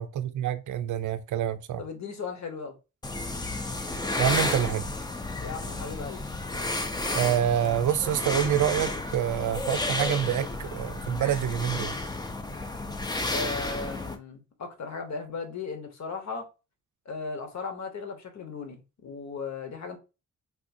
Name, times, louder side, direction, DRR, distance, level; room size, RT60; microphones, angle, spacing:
voice 1, 0.0-1.8 4.1-4.9 7.1-12.0, right 10 dB, 70° right, 0.5 m, -27 dB
voice 2, 1.8-2.8 5.4-6.2 13.3-16.5 17.1-20.0, left 4 dB, 60° left, 1.0 m, -36 dB
sound 1, 3.0-14.2, left 2 dB, 15° left, 0.4 m, -32 dB
3.6 x 2.5 x 2.6 m
cardioid pair, 95°, 31 cm